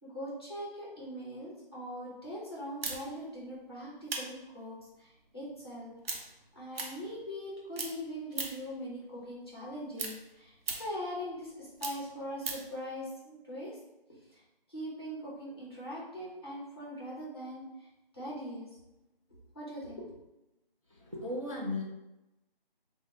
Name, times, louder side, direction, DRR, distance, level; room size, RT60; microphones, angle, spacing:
voice 1, 0.0-6.0 6.5-13.8 14.3-14.4 14.7-17.9 18.1-18.7 19.5-20.1, equal, 25° left, -6 dB, 0.7 m, -41 dB
sound 1, 2.8-7.5 7.7-8.8 9.1-12.7, right 3 dB, 80° right, 0.8 m, -40 dB
voice 2, 21.1-21.8, left 2 dB, 35° right, -3 dB, 0.4 m, -35 dB
3.6 x 2.1 x 3.0 m, 0.96 s
figure-of-eight pair, 175°, 29 cm